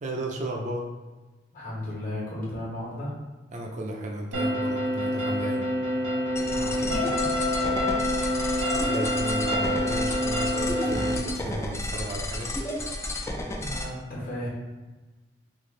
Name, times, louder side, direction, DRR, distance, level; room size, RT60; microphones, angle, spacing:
voice 1, 0.0-0.9 3.5-5.6 8.7-12.5, right 1 dB, 40° right, 1 dB, 0.5 m, -34 dB
voice 2, 1.5-3.1 6.3-7.5 13.6-14.5, left 1 dB, 50° left, -5 dB, 1.3 m, -35 dB
sound 1, 4.3-11.2, left 1 dB, 80° right, 0.8 m, -27 dB
sound 2, 6.4-13.8, left 1 dB, 15° left, 0.4 m, -32 dB
3.2 x 2.5 x 3.8 m, 1.2 s
head